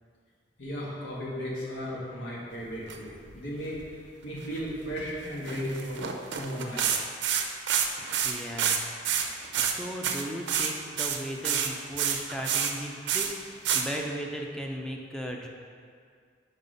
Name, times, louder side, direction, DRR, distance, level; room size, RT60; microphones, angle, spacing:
voice 1, 0.6-3.8 4.2-6.0 6.3-7.1, equal, 85° left, -5 dB, 1.6 m, -35 dB
sound 1, 2.7-3.0 3.3-3.4 3.7-3.9 4.4-5.1 5.5-8.8 9.0-9.7 10.0-10.7 11.0-12.7 13.1-13.3 13.6-13.8, right 8 dB, 75° right, 0.6 m, -28 dB
voice 2, 8.0-9.0 9.2-15.5, equal, 5° left, 0 dB, 0.6 m, -37 dB
5.4 x 4.9 x 5.4 m, 2.1 s
head